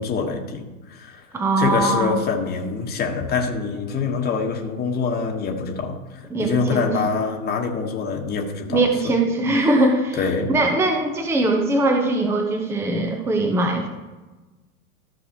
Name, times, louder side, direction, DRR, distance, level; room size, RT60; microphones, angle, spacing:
voice 1, 0.0-1.2 1.6-9.2 10.2-10.5, left 5 dB, 20° left, 1 dB, 1.4 m, -25 dB
voice 2, 1.3-2.2 6.3-7.1 8.7-10.2 10.5-13.9, right 2 dB, 5° right, 3 dB, 0.8 m, -21 dB
14.5 x 6.1 x 3.0 m, 1.2 s
hypercardioid pair, 105°, 44 cm